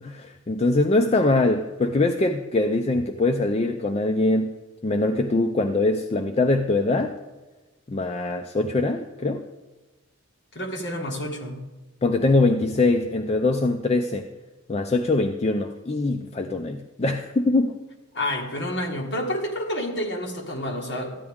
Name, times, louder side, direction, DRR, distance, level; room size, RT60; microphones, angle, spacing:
voice 1, 0.0-4.5 4.8-7.1 7.9-9.4 12.0-14.3 14.7-17.7, left 2 dB, 30° left, 6 dB, 0.4 m, -23 dB
voice 2, 10.5-11.7 18.1-21.2, left 1 dB, 50° left, -1 dB, 1.7 m, -29 dB
14.0 x 9.6 x 3.6 m, 1.2 s
head